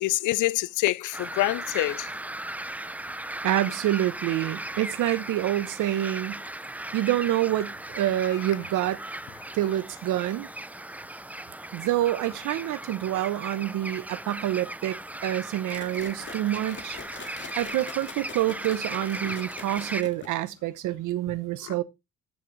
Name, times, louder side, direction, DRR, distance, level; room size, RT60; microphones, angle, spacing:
voice 1, 0.0-2.1 19.2-19.3 21.7-21.8, left 17 dB, 85° left, 0.5 m, -26 dB
sound 1, 1.1-20.0, right 1 dB, 5° right, 0.5 m, -37 dB
voice 2, 3.4-6.4 6.9-9.0 9.5-10.5 11.7-17.0 17.6-21.8, right 13 dB, 85° right, 0.9 m, -27 dB
sound 2, 15.7-20.6, left 5 dB, 40° left, 2.0 m, -44 dB
13.0 x 6.3 x 3.2 m
cardioid pair, 90°, 30 cm